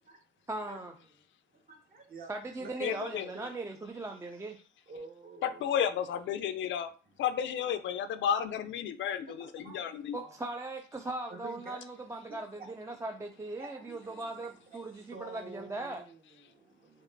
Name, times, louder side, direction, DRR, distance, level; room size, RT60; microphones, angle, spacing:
voice 1, 0.5-0.9 2.3-4.6 10.1-16.0, right 2 dB, 15° right, 0.4 m, -39 dB
voice 2, 1.7-2.3 2.6-3.0 3.3-3.5 4.9-5.6 9.4-9.8 10.2-10.4 11.3-11.8 12.3-12.7 13.6-17.0, right 3 dB, 50° right, 1.4 m, -49 dB
voice 3, 2.8-3.3 5.4-6.9 7.2-10.2, left 8 dB, 70° left, 0.5 m, -32 dB
5.2 x 2.5 x 2.6 m
cardioid pair, 90°, 20 cm